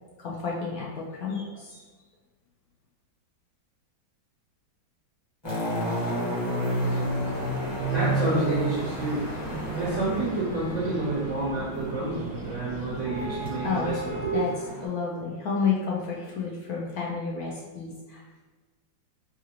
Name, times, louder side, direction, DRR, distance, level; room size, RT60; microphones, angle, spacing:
voice 1, 0.2-1.8 13.6-14.0 14.3-14.5 14.8-18.2, left 5 dB, 70° left, -4 dB, 0.9 m, -30 dB
sound 1, 5.4-14.8, right 1 dB, 20° left, 0.9 m, -31 dB
sound 2, 6.7-14.3, right 4 dB, 85° right, 1.4 m, -43 dB
voice 2, 7.3-14.5, right 2 dB, 65° right, -5 dB, 0.7 m, -29 dB
4.8 x 2.8 x 2.9 m, 1.3 s
omnidirectional pair, 2.1 m